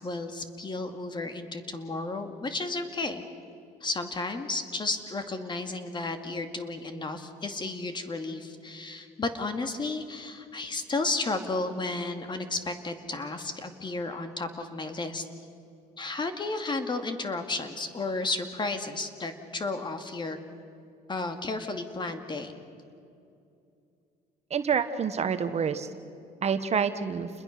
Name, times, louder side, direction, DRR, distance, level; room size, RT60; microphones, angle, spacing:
voice 1, 0.0-3.2 3.8-15.2 16.0-20.4 21.1-22.5, left 3 dB, 25° left, 7 dB, 2.2 m, -33 dB
voice 2, 24.5-25.9 26.4-27.3, right 6 dB, 40° right, 10 dB, 1.2 m, -27 dB
29.0 x 21.5 x 6.7 m, 2.6 s
cardioid pair, 110°, 17 cm